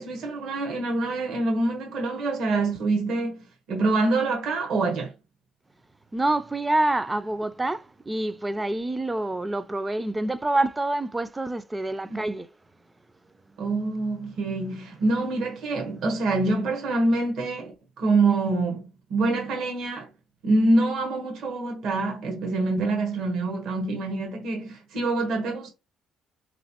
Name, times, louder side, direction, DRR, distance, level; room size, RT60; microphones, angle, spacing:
voice 1, 0.0-5.1 12.1-12.2 13.6-20.1 20.4-25.7, right 2 dB, 70° right, 1.1 m, -25 dB
voice 2, 6.1-12.5 13.5-13.6, right 2 dB, 15° right, 0.4 m, -27 dB
3.4 x 3.0 x 2.9 m
supercardioid pair, 80°, 0 cm